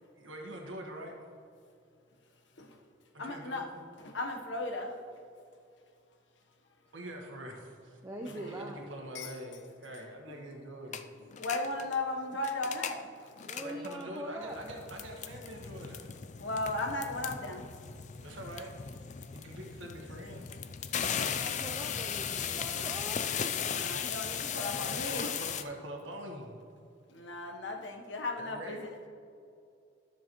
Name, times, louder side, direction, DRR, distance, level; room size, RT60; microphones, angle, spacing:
voice 1, 0.2-1.1 3.1-3.8 6.9-11.0 13.5-16.1 18.2-19.0 19.3-20.5 22.6-22.9 24.8-26.6 28.4-28.8, right 1 dB, 80° right, 1 dB, 1.4 m, -44 dB
voice 2, 3.2-3.7 4.0-5.0 8.2-8.3 9.1-9.3 11.4-13.3 16.4-17.7 23.5-25.3 27.1-28.9, left 2 dB, 65° left, 3 dB, 1.0 m, -36 dB
voice 3, 8.0-8.8 13.4-14.6 21.2-23.5, right 1 dB, 15° right, 1 dB, 0.5 m, -42 dB
sound 1, 10.9-11.0 11.3-12.0 12.3-13.0 13.4-14.0 14.5-25.6, left 7 dB, 35° left, 0.4 m, -37 dB
13.0 x 7.1 x 3.0 m, 2.5 s
head